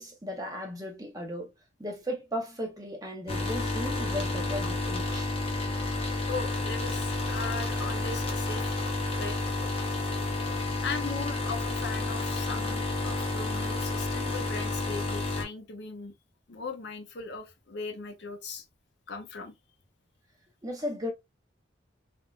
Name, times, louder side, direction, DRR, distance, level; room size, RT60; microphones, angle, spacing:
voice 1, 0.0-1.5 1.8-5.3 20.6-21.1, equal, 20° right, 0.8 m, -36 dB
sound 1, 3.3-15.4, left 2 dB, 30° left, 0.8 m, -30 dB
voice 2, 6.3-8.7 9.2-9.6 10.8-16.1 16.5-18.6 19.1-19.5, left 4 dB, 60° left, 0.6 m, -38 dB
3.6 x 2.5 x 2.4 m
head